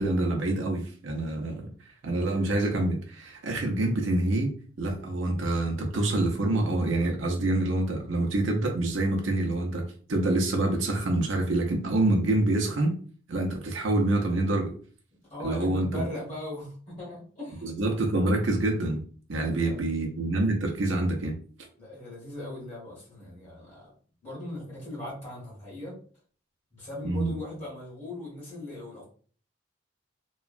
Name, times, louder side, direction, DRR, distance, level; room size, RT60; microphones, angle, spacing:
voice 1, 0.0-1.7 2.0-4.5 4.8-9.8 10.1-12.9 13.3-14.7 15.4-16.1 17.6-19.0 19.3-21.4 27.0-27.3, right 2 dB, 80° right, 1 dB, 0.6 m, -26 dB
voice 2, 15.3-17.7 19.3-19.9 21.8-23.9 24.2-26.0 26.7-29.0, left 1 dB, 35° left, -7 dB, 1.3 m, -39 dB
2.9 x 2.2 x 2.4 m, 0.43 s
head